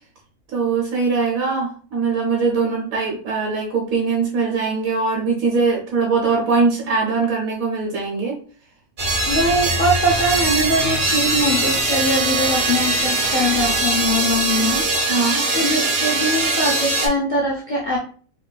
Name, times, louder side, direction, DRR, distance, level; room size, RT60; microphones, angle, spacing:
voice 1, 0.5-8.4 15.1-15.4, right 4 dB, 75° right, -2 dB, 1.2 m, -21 dB
sound 1, 9.0-17.1, right 2 dB, 45° right, 0.9 m, -21 dB
voice 2, 9.3-14.9 15.5-18.0, equal, 45° left, -4 dB, 0.7 m, -22 dB
4.1 x 3.0 x 2.3 m, 0.43 s
omnidirectional pair, 1.4 m